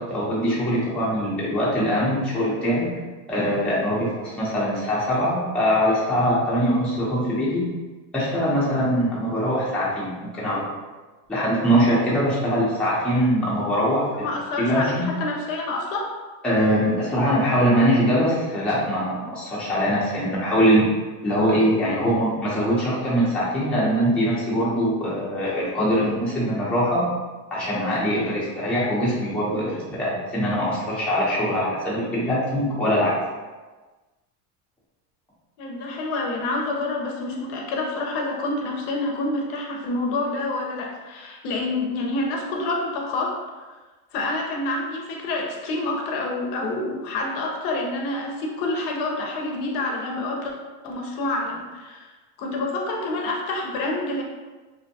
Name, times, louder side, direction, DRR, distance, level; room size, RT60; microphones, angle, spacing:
voice 1, 0.0-2.9 3.3-7.6 8.1-10.6 11.3-15.0 16.4-20.8 21.2-27.0 27.5-33.1, equal, ahead, -9 dB, 0.5 m, -22 dB
voice 2, 14.2-16.1 35.6-43.4 44.1-50.5 50.8-52.1 52.4-54.2, left 2 dB, 55° left, 0 dB, 0.6 m, -27 dB
2.6 x 2.1 x 2.7 m, 1.3 s
supercardioid pair, 135°, 46 cm